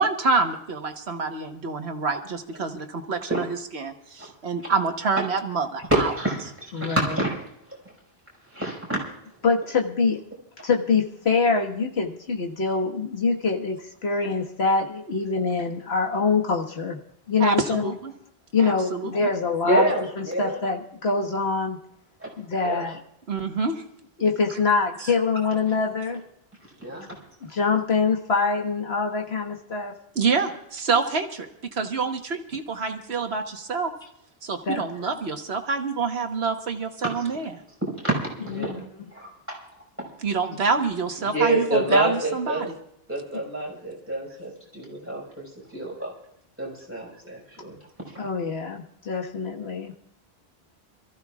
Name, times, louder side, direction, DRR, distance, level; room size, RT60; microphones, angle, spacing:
voice 1, 0.0-3.4 3.7-6.0 17.4-18.1 18.6-19.3 23.3-23.8 25.0-25.1 30.1-33.9 34.4-37.5 40.2-42.7, right 4 dB, 85° right, 5 dB, 1.5 m, -27 dB
voice 2, 5.9-6.4 6.7-7.4 8.5-9.0 19.6-20.6 22.2-22.3 22.6-22.9 26.8-27.1 37.8-38.8 39.1-39.6 40.0-40.1 41.2-42.7 43.1-45.4 45.7-46.1 46.6-48.1, right 1 dB, 15° right, -4 dB, 5.2 m, -27 dB
voice 3, 9.4-10.2 10.6-17.0 17.3-17.9 18.5-21.8 22.4-23.0 24.2-26.2 27.4-29.9 34.7-34.8 38.5-39.1 48.2-49.9, left 4 dB, 85° left, 2 dB, 1.8 m, -24 dB
27.0 x 14.5 x 2.4 m, 0.73 s
omnidirectional pair, 1.0 m